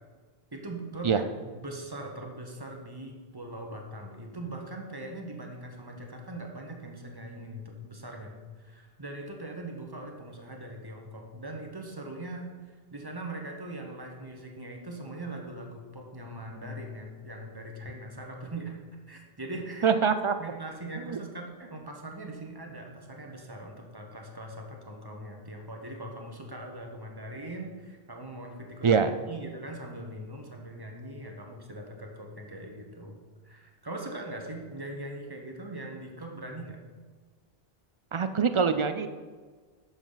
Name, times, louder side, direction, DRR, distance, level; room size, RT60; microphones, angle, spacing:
voice 1, 0.5-18.8 19.1-19.9 20.4-29.0 29.3-33.2 33.4-36.8, right 1 dB, 25° right, 1 dB, 1.2 m, -41 dB
voice 2, 19.8-20.3 21.0-21.2 28.8-29.1 38.1-39.1, right 6 dB, 50° right, 10 dB, 0.3 m, -24 dB
10.0 x 7.1 x 4.0 m, 1.5 s
omnidirectional pair, 1.0 m